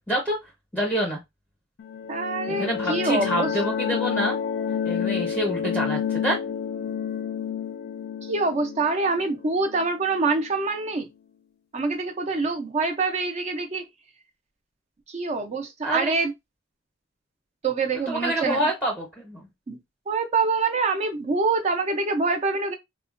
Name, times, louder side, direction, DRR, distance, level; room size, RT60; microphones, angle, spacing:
voice 1, 0.7-1.2 2.5-4.4 4.8-6.4 15.8-16.1 18.1-19.5, right 1 dB, 5° left, 0.7 m, -27 dB
sound 1, 1.8-10.4, left 7 dB, 55° left, 0.3 m, -29 dB
voice 2, 2.1-3.6 8.2-11.1 11.7-13.9 15.1-16.3 17.6-18.6 19.7-19.8 20.1-22.7, right 3 dB, 35° right, 0.4 m, -25 dB
3.6 x 2.1 x 2.4 m
head